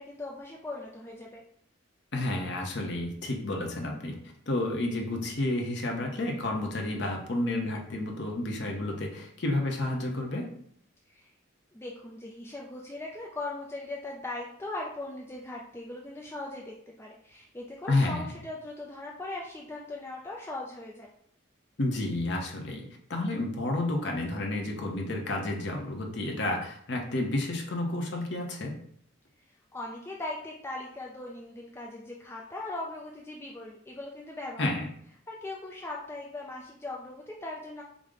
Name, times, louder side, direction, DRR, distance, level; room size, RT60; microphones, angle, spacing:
voice 1, 0.0-1.4 11.1-11.3 11.7-21.1 29.7-34.7 35.3-37.8, left 2 dB, 10° left, -2 dB, 0.3 m, -39 dB
voice 2, 2.1-4.2 4.5-10.5 17.9-18.3 21.8-28.8 34.6-34.9, left 2 dB, 55° left, 1 dB, 0.8 m, -30 dB
4.9 x 2.1 x 3.7 m, 0.66 s
head